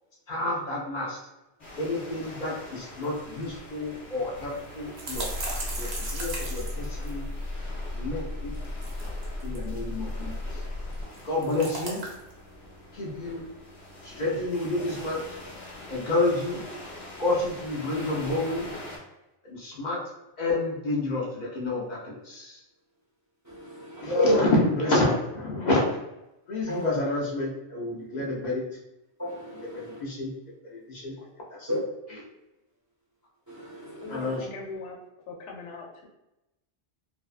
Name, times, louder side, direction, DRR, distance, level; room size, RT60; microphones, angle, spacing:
voice 1, 0.3-1.2 1.8-5.3 5.8-6.0 7.0-7.2 7.9-8.5 9.4-10.6 11.2-12.0 12.9-13.4 14.0-15.2 15.9-16.6 17.2-18.7 19.4-20.0 20.4-22.6 24.0-26.0 26.5-28.6 29.7-30.3 30.6-31.7 34.1-34.4, left 2 dB, 55° left, -4 dB, 0.6 m, -29 dB
sound 1, 1.6-19.0, left 1 dB, 30° left, 0.9 m, -44 dB
sound 2, 3.0-3.1 3.4-3.5 4.4-7.5 8.5-9.6 10.9-12.3, right 2 dB, 70° right, 0.9 m, -36 dB
sound 3, 5.1-11.0, left 1 dB, 90° right, 1.0 m, -35 dB
voice 2, 23.5-24.5 26.7-26.9 29.2-30.0 31.7-31.8 33.5-34.4, left 1 dB, 20° right, -6 dB, 0.5 m, -30 dB
voice 3, 34.0-35.0 35.3-36.1, left 3 dB, 85° left, 0 dB, 0.9 m, -40 dB
2.5 x 2.3 x 2.4 m, 0.93 s
omnidirectional pair, 1.2 m